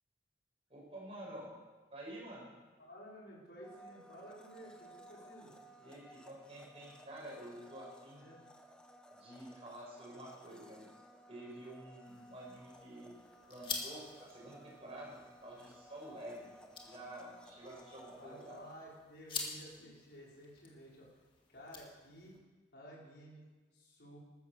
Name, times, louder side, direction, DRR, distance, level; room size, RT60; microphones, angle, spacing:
voice 1, 0.7-1.5 1.9-2.5 5.8-8.3 9.1-10.9 11.3-13.1 13.5-16.5 16.8-18.6, right 1 dB, 30° right, -4 dB, 6.5 m, -49 dB
voice 2, 2.8-5.6 8.2-8.4 12.2-12.3 18.1-21.1 21.5-22.4 22.7-23.5 23.7-24.2, equal, 65° left, -5 dB, 5.5 m, -53 dB
Domestic sounds home sounds, 3.6-18.7, equal, 5° left, 1.1 m, -58 dB
sound 1, 12.0-22.4, left 4 dB, 30° left, 2.1 m, -48 dB
15.0 x 13.0 x 6.8 m, 1.3 s
head